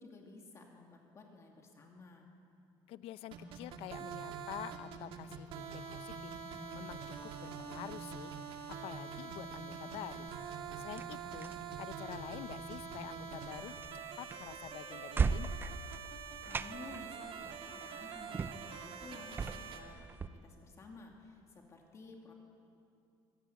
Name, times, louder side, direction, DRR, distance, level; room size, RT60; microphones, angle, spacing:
voice 1, 0.0-2.3 16.4-22.3, left 3 dB, 30° left, 1 dB, 2.5 m, -53 dB
voice 2, 2.9-6.3 6.7-8.3 8.8-10.3 10.8-11.5 11.8-13.7 14.2-15.5, left 14 dB, 70° left, 15 dB, 0.7 m, -47 dB
sound 1, 3.3-19.8, right 6 dB, 60° right, 2.4 m, -45 dB
sound 2, 10.3-20.3, right 5 dB, 20° right, 0.5 m, -40 dB
24.0 x 17.0 x 9.3 m, 2.6 s
cardioid pair, 165°, 10 cm